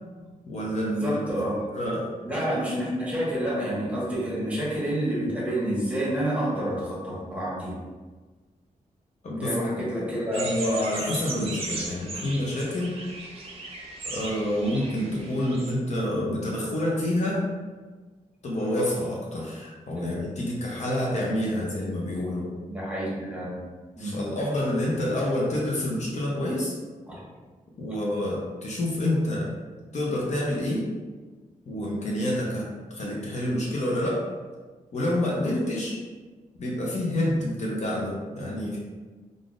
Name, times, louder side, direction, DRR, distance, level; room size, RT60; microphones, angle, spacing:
voice 1, 0.5-1.2 1.7-2.1 9.2-9.5 9.8-9.9 10.4-13.0 14.1-17.4 18.4-22.5 24.0-26.8 27.8-29.5 29.9-30.8 31.7-32.7 32.9-34.3 34.9-36.0 36.6-38.8, left 1 dB, 55° left, -4 dB, 0.7 m, -28 dB
voice 2, 1.0-1.6 2.2-7.7 9.3-10.5 11.8-11.9 12.1-12.2 22.7-23.6 24.0-24.1 27.1-27.2, right 1 dB, 10° right, -7 dB, 1.1 m, -28 dB
sound 1, 10.3-15.7, right 3 dB, 45° right, 0.6 m, -37 dB
3.5 x 2.5 x 2.5 m, 1.4 s
wide cardioid pair, 110°, 14 cm